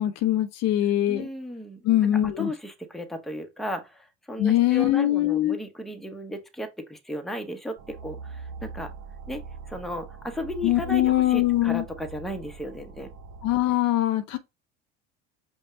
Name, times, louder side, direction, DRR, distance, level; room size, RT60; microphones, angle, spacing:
voice 1, 0.0-1.3 1.8-2.5 4.4-5.6 10.6-11.8 13.4-14.4, left 13 dB, 50° left, 0.6 m, -22 dB
voice 2, 1.1-1.8 2.4-8.9 9.3-9.4 9.7-13.1, left 1 dB, ahead, 0.9 m, -35 dB
sound 1, 7.8-13.6, right 5 dB, 60° right, 0.9 m, -42 dB
5.3 x 2.2 x 3.7 m
hypercardioid pair, 80°, 32 cm